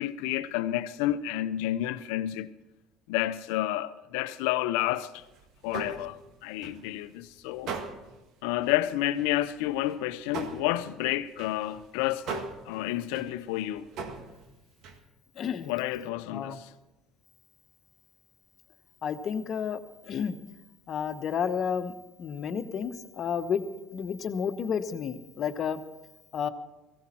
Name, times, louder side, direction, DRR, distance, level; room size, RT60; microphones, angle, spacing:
voice 1, 0.0-2.5 3.1-5.2 5.6-7.7 8.4-13.9 15.6-16.7, left 14 dB, 75° left, 0.6 m, -30 dB
sound 1, 5.2-7.1 7.5-8.3 8.6-8.8 9.1-15.0, right 4 dB, 65° right, 1.7 m, -40 dB
voice 2, 15.4-15.7 16.3-16.6 19.0-19.8 20.1-20.4 20.9-21.9 22.2-23.6 23.9-25.8 26.3-26.5, left 7 dB, 50° left, 1.1 m, -31 dB
17.0 x 15.5 x 4.3 m
hypercardioid pair, 70°, 0 cm